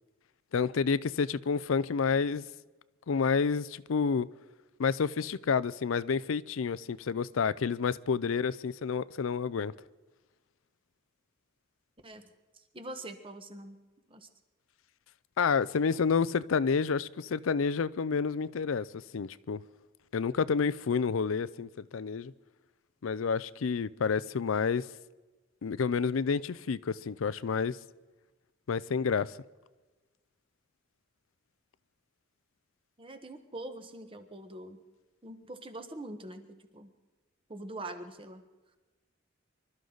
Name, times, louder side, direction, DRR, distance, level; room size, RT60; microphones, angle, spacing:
voice 1, 0.5-2.4 3.1-4.3 4.8-9.7 15.4-19.6 20.1-22.3 23.0-24.9 25.6-27.8 28.7-29.4, left 5 dB, 80° left, 0.5 m, -29 dB
voice 2, 12.5-13.8 14.1-14.3 33.0-34.8 35.2-36.9 37.5-38.4, right 1 dB, 25° right, 1.2 m, -44 dB
24.5 x 13.0 x 3.9 m
head